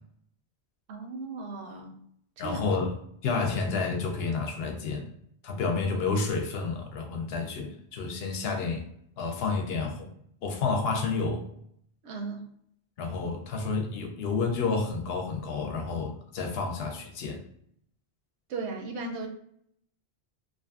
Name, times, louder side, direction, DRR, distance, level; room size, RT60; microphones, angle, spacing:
voice 1, 0.9-2.0 2.4-2.7 12.0-12.5 18.5-19.3, right 3 dB, 80° right, 3 dB, 0.9 m, -36 dB
voice 2, 2.4-2.9 3.2-5.1 5.4-8.8 9.2-10.1 10.4-11.4 13.0-17.4, left 4 dB, 70° left, 3 dB, 0.8 m, -30 dB
2.5 x 2.4 x 2.3 m, 0.70 s
omnidirectional pair, 1.1 m